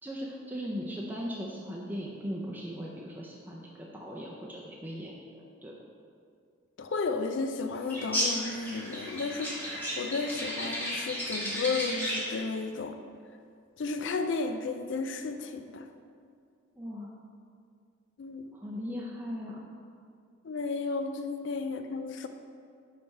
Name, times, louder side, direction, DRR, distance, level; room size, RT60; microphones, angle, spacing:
voice 1, 0.0-5.7 16.7-17.1 18.5-19.7, equal, 10° right, -4 dB, 0.5 m, -38 dB
voice 2, 6.8-13.0 13.8-15.9 18.2-18.5 20.4-22.3, left 4 dB, 65° left, 7 dB, 0.4 m, -33 dB
sound 1, 7.9-12.4, equal, 10° left, 1.4 m, -33 dB
9.4 x 3.3 x 4.7 m, 2.2 s
head